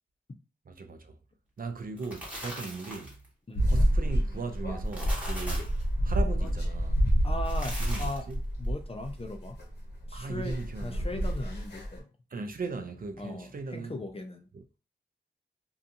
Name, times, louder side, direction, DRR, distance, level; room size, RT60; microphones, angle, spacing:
voice 1, 0.7-1.2 1.6-3.2 3.7-5.7 6.0-7.0 7.8-8.4 10.1-11.1 12.3-14.0 14.5-14.6, right 4 dB, 50° right, 0.4 m, -38 dB
sound 1, 1.8-3.3 4.7-5.8 7.3-8.3, equal, 5° right, 1.2 m, -40 dB
sound 2, 3.5-12.0, equal, 65° left, 0.9 m, -28 dB
voice 2, 7.2-8.3 8.6-9.6 10.1-12.1 13.2-14.5, left 2 dB, 30° left, 0.5 m, -38 dB
2.6 x 2.3 x 2.6 m
wide cardioid pair, 60°, 18 cm